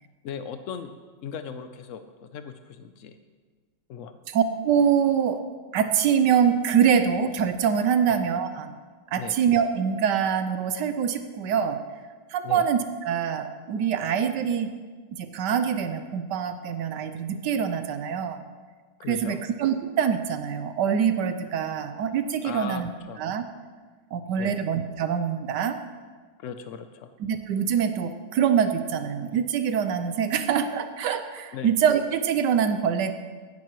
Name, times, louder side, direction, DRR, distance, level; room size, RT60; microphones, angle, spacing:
voice 1, 0.2-0.9 1.2-3.2 3.9-4.2 8.1-8.2 9.1-9.3 12.4-12.6 19.0-19.4 22.4-23.2 24.4-24.6 26.4-27.1 31.5-31.7, left 7 dB, 90° left, 9 dB, 0.6 m, -37 dB
voice 2, 4.3-5.4 5.7-8.8 9.1-11.8 12.3-14.7 15.2-18.4 19.1-22.9 23.2-23.4 24.1-25.8 27.2-33.1, right 7 dB, 75° right, 9 dB, 1.2 m, -24 dB
15.5 x 10.5 x 3.1 m, 1.5 s
omnidirectional pair, 2.0 m